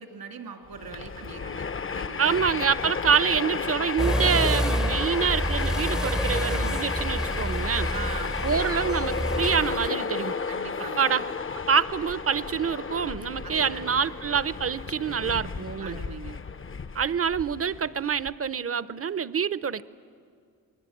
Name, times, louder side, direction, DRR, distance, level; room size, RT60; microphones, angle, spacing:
voice 1, 0.0-1.7 1.9-2.3 7.9-8.4 10.5-11.1 13.4-14.1 15.8-16.4, right 6 dB, 80° right, 5 dB, 2.5 m, -41 dB
Train, 0.7-18.3, left 5 dB, 35° left, 0.7 m, -33 dB
voice 2, 2.2-7.9 8.4-10.4 11.0-11.3 11.7-16.0 16.9-19.8, right 7 dB, 40° right, 17 dB, 0.7 m, -26 dB
sound 1, 4.0-9.9, equal, ahead, 0.6 m, -28 dB
29.0 x 21.0 x 8.5 m, 2.2 s
cardioid pair, 65°, 36 cm